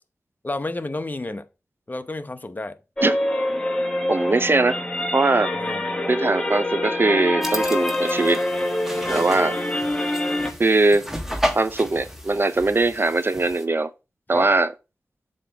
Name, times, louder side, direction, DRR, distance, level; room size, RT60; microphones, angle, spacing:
voice 1, 0.4-1.5 1.9-2.7 5.6-5.8 9.0-9.5 14.3-14.5, left 2 dB, 35° left, 0.8 m, -31 dB
sound 1, 3.0-10.5, left 1 dB, 15° left, 1.3 m, -25 dB
voice 2, 4.1-4.8 5.1-5.5 6.1-8.4 9.1-9.6 10.6-11.1 11.6-13.9 14.3-14.7, right 3 dB, 45° right, 0.5 m, -20 dB
sound 2, 7.4-13.6, equal, 5° right, 1.3 m, -33 dB
7.5 x 3.0 x 5.6 m
cardioid pair, 55°, 5 cm